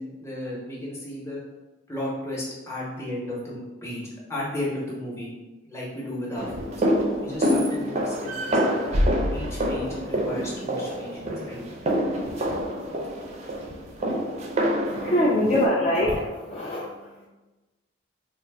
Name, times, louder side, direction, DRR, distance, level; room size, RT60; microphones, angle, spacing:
voice 1, 0.0-1.4 1.9-4.0 4.3-5.3 5.6-6.7 7.2-8.8 9.3-11.6, left 1 dB, 15° left, -5 dB, 0.8 m, -34 dB
sound 1, 6.4-15.7, equal, 35° right, 0.4 m, -26 dB
voice 2, 14.9-17.3, left 1 dB, 35° left, -4 dB, 0.3 m, -24 dB
3.3 x 2.0 x 3.3 m, 1.1 s
head